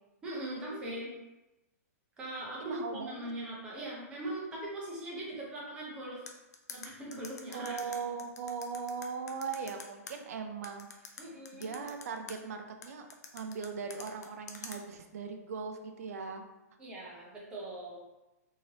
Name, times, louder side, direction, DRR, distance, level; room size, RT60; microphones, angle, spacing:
voice 1, 0.2-1.1 2.2-6.2 6.7-7.8 11.2-11.7 16.8-18.0, right 1 dB, 10° right, -4 dB, 0.6 m, -40 dB
voice 2, 2.6-3.3 7.5-11.2 11.5-13.1 13.3-16.4, right 5 dB, 65° right, 5 dB, 0.4 m, -39 dB
sound 1, 6.3-10.1 10.6-12.3 12.8-14.8, left 6 dB, 75° left, 0.5 m, -45 dB
3.1 x 2.7 x 2.8 m, 0.99 s
hypercardioid pair, 175°, 9 cm